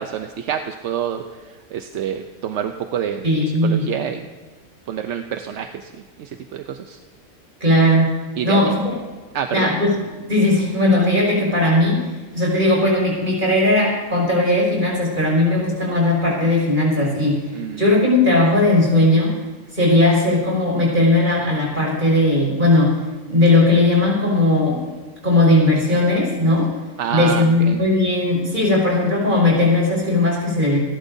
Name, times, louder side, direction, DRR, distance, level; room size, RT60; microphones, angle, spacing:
voice 1, 0.0-3.2 3.6-4.3 4.9-7.0 8.4-8.7 9.3-9.7 17.5-17.8 27.0-27.8, right 8 dB, 60° right, 6 dB, 0.9 m, -27 dB
voice 2, 3.2-3.8 7.6-8.1 8.4-8.7 9.5-9.9 10.3-12.1 12.3-17.4 17.8-19.3 19.7-23.0 23.3-24.8 25.2-26.7 27.1-30.8, left 2 dB, 35° right, -4 dB, 5.8 m, -17 dB
28.0 x 12.0 x 2.7 m, 1.3 s
omnidirectional pair, 1.5 m